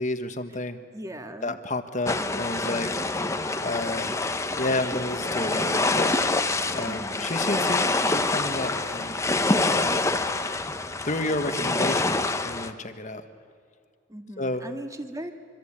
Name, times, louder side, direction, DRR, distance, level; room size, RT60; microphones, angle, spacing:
voice 1, 0.0-0.8 1.4-3.0 3.6-4.1 4.6-6.1 6.7-9.2 9.7-10.0 11.0-13.2 14.4-14.6, left 2 dB, 35° left, 8 dB, 1.5 m, -30 dB
voice 2, 0.9-1.6 2.1-2.4 6.9-7.3 14.1-15.3, right 1 dB, 15° right, 6 dB, 1.9 m, -38 dB
sound 1, 2.1-12.7, left 2 dB, 15° left, 0.9 m, -26 dB
26.0 x 25.0 x 8.8 m, 2.3 s
head